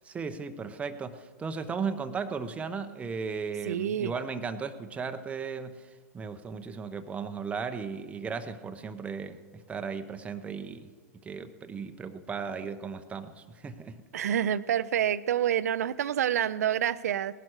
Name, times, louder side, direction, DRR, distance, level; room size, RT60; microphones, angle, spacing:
voice 1, 0.0-10.9 11.2-14.0, right 5 dB, 15° right, 8 dB, 0.8 m, -36 dB
voice 2, 3.7-4.1 14.1-17.3, right 10 dB, 70° right, 16 dB, 0.6 m, -27 dB
19.0 x 11.5 x 4.7 m, 1.5 s
hypercardioid pair, 115°, 9 cm